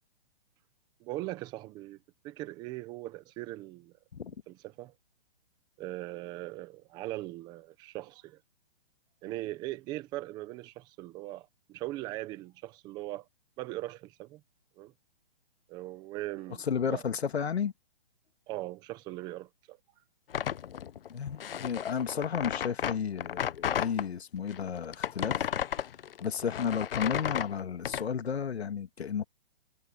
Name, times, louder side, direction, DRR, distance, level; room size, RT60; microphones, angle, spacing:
voice 1, 1.0-2.0 2.2-3.9 4.5-4.9 5.8-8.4 9.2-13.3 13.6-14.4 14.8-14.9 15.7-17.0 18.5-19.8, right 17 dB, 15° right, 0.8 m, -40 dB
voice 2, 16.7-17.7 21.1-25.5 26.2-29.2, left 7 dB, 90° left, 2.3 m, -32 dB
sound 1, 20.3-24.1 24.5-28.1, left 9 dB, 60° left, 0.9 m, -33 dB
hypercardioid pair, 165°, 31 cm